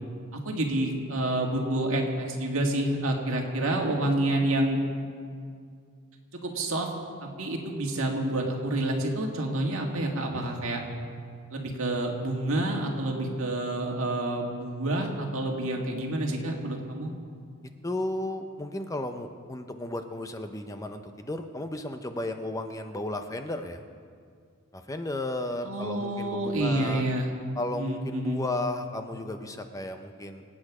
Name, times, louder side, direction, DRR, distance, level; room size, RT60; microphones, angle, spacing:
voice 1, 0.3-4.8 6.4-6.9 7.2-10.8 11.5-17.1 25.6-27.3 27.7-28.4, right 1 dB, 65° right, 1 dB, 2.0 m, -28 dB
voice 2, 17.8-23.8 24.7-27.1 27.5-30.4, left 1 dB, 15° left, 7 dB, 0.6 m, -34 dB
25.5 x 8.8 x 4.9 m, 2.2 s
head